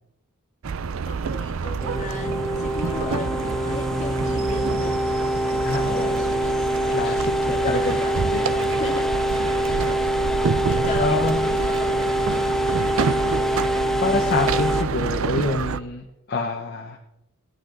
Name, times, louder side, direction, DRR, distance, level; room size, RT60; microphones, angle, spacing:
sound 1, 0.6-15.8, right 5 dB, 70° right, 0.5 m, -28 dB
voice 1, 1.0-5.1 5.8-6.3 7.5-8.2 8.8-9.1 10.7-12.6, left 2 dB, 35° left, 0 dB, 2.3 m, -35 dB
sound 2, 1.8-14.8, equal, ahead, 0.5 m, -24 dB
voice 2, 5.6-6.2 6.9-8.0 8.3-8.4 11.0-11.5 14.0-17.0, left 3 dB, 50° left, 2 dB, 1.0 m, -27 dB
18.5 x 9.5 x 3.9 m, 0.86 s
head